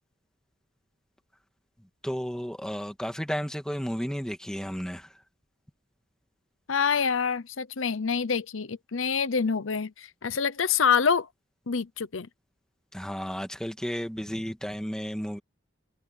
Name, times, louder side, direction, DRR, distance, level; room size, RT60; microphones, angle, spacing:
voice 1, 2.0-5.2 12.9-15.4, equal, 5° left, 1.9 m, -33 dB
voice 2, 6.7-11.3 11.7-12.3, left 6 dB, 85° left, 0.8 m, -26 dB
head